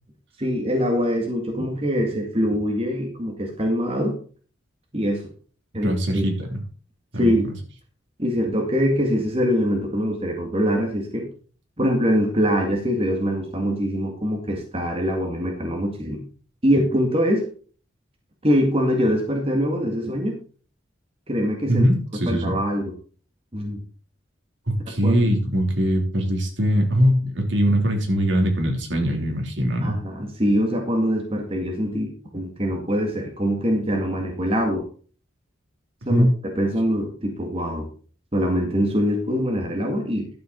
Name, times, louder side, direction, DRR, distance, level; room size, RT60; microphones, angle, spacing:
voice 1, 0.4-4.2 4.9-5.3 5.7-6.2 7.1-7.5 8.2-11.3 11.8-16.2 16.6-17.5 18.4-20.4 21.3-21.9 22.3-22.9 23.5-23.8 25.0-25.2 29.8-34.8 36.1-37.9 38.3-40.3, equal, 30° right, 1 dB, 2.0 m, -23 dB
voice 2, 5.8-6.6 7.1-7.4 21.7-22.6 24.7-30.0 36.1-36.3, equal, 65° right, 2 dB, 3.1 m, -21 dB
12.0 x 8.6 x 3.9 m, 0.40 s
head